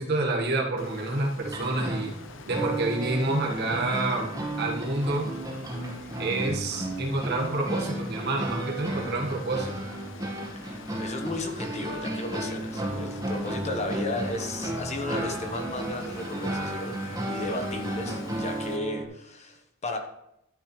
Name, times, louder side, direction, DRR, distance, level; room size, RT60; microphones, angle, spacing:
voice 1, 0.0-2.1 2.5-4.3 4.6-5.3 6.1-9.9, right 2 dB, 55° right, 0 dB, 1.8 m, -28 dB
Water, 0.8-18.8, left 4 dB, 70° left, 0.8 m, -47 dB
sound 1, 1.4-19.0, right 1 dB, 20° right, 1.8 m, -33 dB
voice 2, 10.7-20.0, left 2 dB, 35° left, 5 dB, 1.2 m, -34 dB
12.5 x 9.7 x 3.3 m, 0.83 s
head